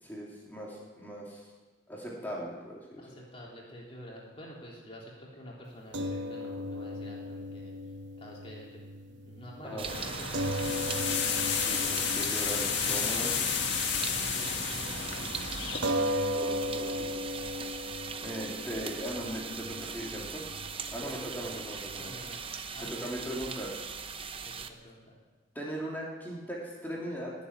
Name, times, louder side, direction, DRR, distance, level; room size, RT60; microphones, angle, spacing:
voice 1, 0.1-1.5 1.9-3.0 9.6-9.9 11.6-13.3 15.7-16.1 16.3-17.1 18.2-20.6 20.9-22.1 22.9-23.8 25.5-27.3, equal, 10° left, -4 dB, 2.8 m, -39 dB
voice 2, 3.0-7.8 8.2-8.8 9.1-11.1 12.5-13.6 14.0-15.7 21.0-21.2 22.0-22.4 22.7-22.9 24.4-25.1, equal, 30° left, -4 dB, 3.5 m, -48 dB
sound 1, 5.9-14.4 14.8-14.9 15.8-22.4, equal, 65° right, 1.0 m, -37 dB
sound 2, 9.8-24.7, right 6 dB, 25° right, 0.7 m, -40 dB
sound 3, 9.9-15.8, left 7 dB, 60° left, 1.9 m, -31 dB
17.5 x 7.6 x 9.8 m, 1.3 s
head